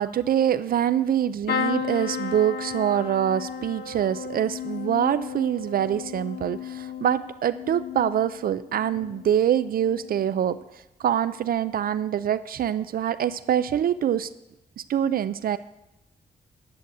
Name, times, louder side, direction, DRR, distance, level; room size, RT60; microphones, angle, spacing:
voice 1, 0.0-14.3 14.8-15.6, right 10 dB, 65° right, 14 dB, 0.4 m, -25 dB
sound 1, 1.5-9.3 9.7-10.3 11.5-11.7 12.0-12.1, left 7 dB, 80° left, 0.9 m, -34 dB
10.5 x 8.3 x 7.5 m, 0.91 s
wide cardioid pair, 145°, 16 cm